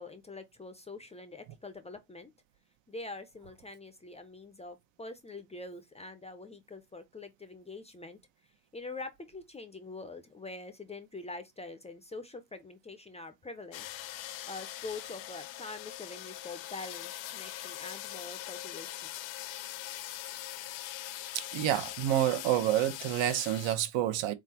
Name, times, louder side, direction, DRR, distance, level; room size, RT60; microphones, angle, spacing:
voice 1, 0.0-2.3 2.9-8.2 8.7-13.9 14.5-19.1, left 3 dB, 15° left, 0.4 m, -44 dB
sound 1, 13.7-23.8, left 14 dB, 80° left, 0.7 m, -42 dB
voice 2, 21.3-24.3, right 12 dB, 80° right, 0.9 m, -28 dB
4.4 x 3.7 x 2.8 m
cardioid pair, 180°, 44 cm